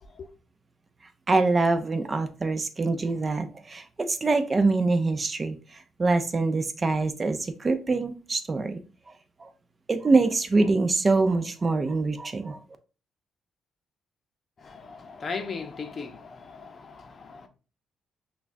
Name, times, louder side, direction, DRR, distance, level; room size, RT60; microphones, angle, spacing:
voice 1, 1.3-8.8 9.4-9.5 9.9-12.6, right 3 dB, 30° right, 0.5 m, -24 dB
voice 2, 14.6-17.5, left 4 dB, 45° left, 0.6 m, -37 dB
5.9 x 2.3 x 2.5 m
cardioid pair, 90°, 0 cm